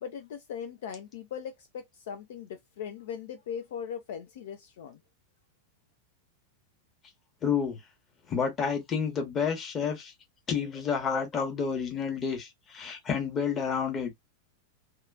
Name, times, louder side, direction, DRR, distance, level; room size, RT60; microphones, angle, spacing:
voice 1, 0.0-5.0, left 7 dB, 55° left, 0.4 m, -39 dB
voice 2, 7.4-7.8 8.3-10.1 10.5-14.2, left 6 dB, 25° left, 1.1 m, -30 dB
2.8 x 2.3 x 2.3 m
figure-of-eight pair, 90°, 0 cm